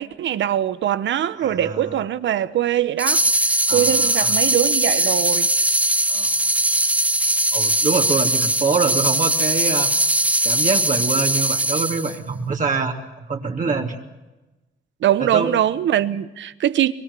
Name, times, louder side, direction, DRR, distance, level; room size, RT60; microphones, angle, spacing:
voice 1, 0.0-5.5 15.0-16.9, right 11 dB, 70° right, 1.2 m, -22 dB
voice 2, 1.4-1.8 3.7-4.6 6.1-6.4 7.5-9.9 10.4-13.0 13.3-14.0 15.2-15.5, right 4 dB, 40° right, 2.9 m, -25 dB
sound 1, 3.0-12.2, right 1 dB, 5° right, 0.8 m, -20 dB
24.5 x 22.5 x 7.0 m
cardioid pair, 90°, 20 cm